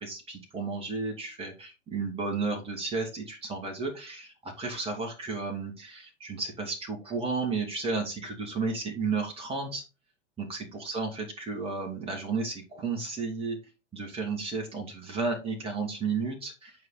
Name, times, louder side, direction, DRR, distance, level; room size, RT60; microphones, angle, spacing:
voice 1, 0.0-9.8 10.4-13.6 13.9-16.7, right 4 dB, 15° right, 2 dB, 2.3 m, -33 dB
9.5 x 5.0 x 4.1 m, 0.28 s
figure-of-eight pair, 100°, 36 cm